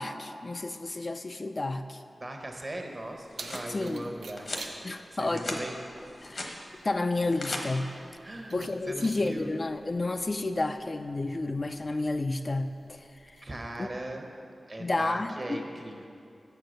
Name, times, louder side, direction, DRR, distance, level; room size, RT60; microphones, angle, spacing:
voice 1, 0.0-2.0 3.7-4.1 4.8-5.7 6.2-6.6 6.8-7.9 8.5-13.4 13.8-13.9 14.8-15.7, left 2 dB, 45° left, 8 dB, 0.3 m, -31 dB
voice 2, 2.1-4.5 5.1-5.8 8.2-9.5 13.4-14.3 14.7-16.1, right 1 dB, 40° right, 3 dB, 0.9 m, -39 dB
Keys jangling, 2.7-13.8, right 4 dB, 90° right, 0.4 m, -51 dB
sound 1, 3.0-3.7 4.4-4.7 5.2-5.6 6.0-6.5 7.1-7.6, left 2 dB, 65° left, 1.0 m, -38 dB
7.4 x 4.6 x 6.4 m, 2.4 s
cardioid pair, 50°, 0 cm